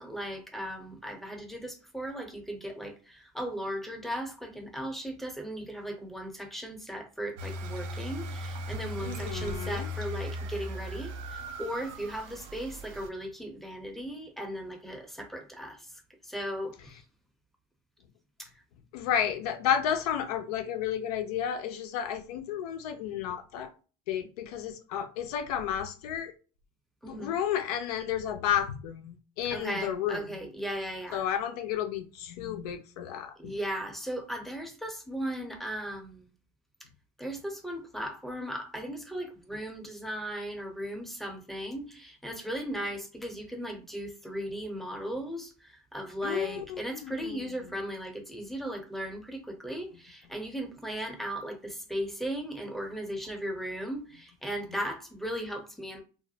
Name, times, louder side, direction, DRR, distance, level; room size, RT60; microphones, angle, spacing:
voice 1, 0.0-15.9 16.2-17.0 18.4-18.5 27.0-27.3 29.5-31.3 33.4-36.3 37.2-56.0, equal, ahead, 0.6 m, -37 dB
sound 1, 7.4-13.1, equal, 75° right, 0.5 m, -38 dB
voice 2, 9.0-9.9 18.9-23.7 24.1-26.3 27.0-30.3 31.1-33.5 46.2-47.5, left 9 dB, 85° left, 0.4 m, -32 dB
2.4 x 2.0 x 2.7 m
supercardioid pair, 85°, 19 cm